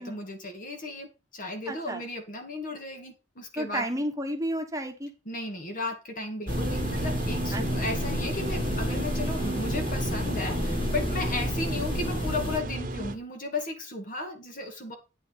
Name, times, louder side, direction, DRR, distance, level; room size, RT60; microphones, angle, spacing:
voice 1, 0.0-3.9 5.3-15.0, left 2 dB, 45° left, 5 dB, 2.3 m, -35 dB
voice 2, 1.7-2.0 3.6-5.1 7.5-7.9 11.3-11.4, right 1 dB, 15° right, 4 dB, 1.3 m, -32 dB
sound 1, 6.5-12.6, left 1 dB, 30° left, 1.3 m, -31 dB
sound 2, 6.5-13.2, right 1 dB, 45° right, 1.2 m, -33 dB
9.4 x 5.9 x 5.7 m, 0.29 s
head